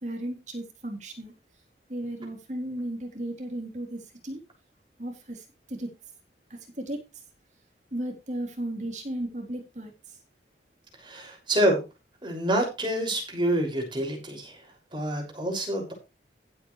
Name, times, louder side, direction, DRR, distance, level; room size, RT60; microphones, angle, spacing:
voice 1, 0.0-1.3 1.9-4.4 5.0-5.9 6.5-7.0 7.9-9.9, right 1 dB, 40° right, 2 dB, 3.8 m, -35 dB
voice 2, 11.0-11.8 12.2-15.9, right 1 dB, 25° right, 1 dB, 6.3 m, -27 dB
15.5 x 8.8 x 3.3 m, 0.28 s
head